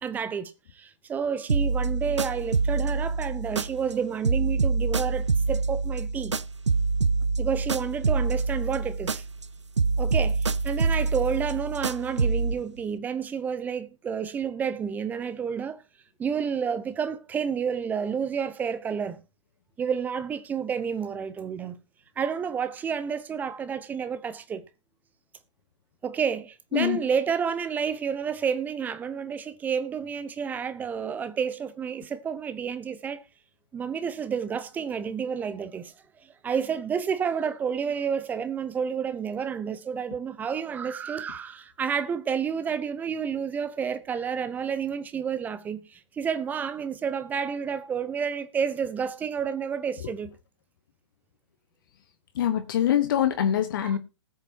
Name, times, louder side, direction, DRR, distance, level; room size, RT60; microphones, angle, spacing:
voice 1, 0.0-6.3 7.4-9.2 10.0-15.8 16.2-19.2 19.8-21.8 22.2-24.6 26.0-33.2 33.7-35.9 36.4-50.3 53.8-54.0, right 7 dB, 10° right, 0.7 m, -30 dB
sound 1, 1.5-4.0 4.2-9.5 9.8-12.6, right 4 dB, 75° right, 0.6 m, -26 dB
voice 2, 26.7-27.0 52.3-54.0, left 10 dB, 45° left, 1.1 m, -24 dB
20.0 x 6.6 x 2.8 m
figure-of-eight pair, 120°, 15 cm